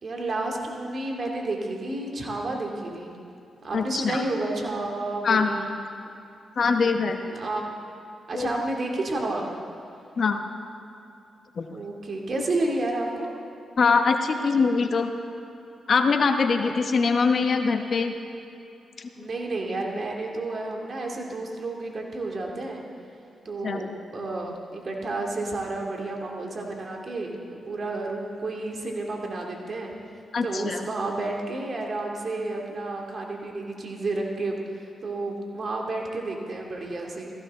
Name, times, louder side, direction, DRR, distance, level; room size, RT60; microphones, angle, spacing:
voice 1, 0.0-3.2 3.6-5.7 7.3-7.6 8.3-9.5 11.6-13.3 16.6-16.7 19.2-22.8 23.4-23.9 24.1-29.9 30.4-34.6 35.0-37.3, right 2 dB, 55° right, 0 dB, 2.5 m, -31 dB
voice 2, 3.7-4.2 5.2-5.5 6.6-7.2 8.3-8.5 10.2-10.4 11.6-11.8 13.8-15.1 15.9-18.1 19.0-19.3 23.6-23.8 30.3-30.8, left 5 dB, 60° left, 6 dB, 1.0 m, -23 dB
16.5 x 15.0 x 3.7 m, 2.7 s
supercardioid pair, 50°, 0 cm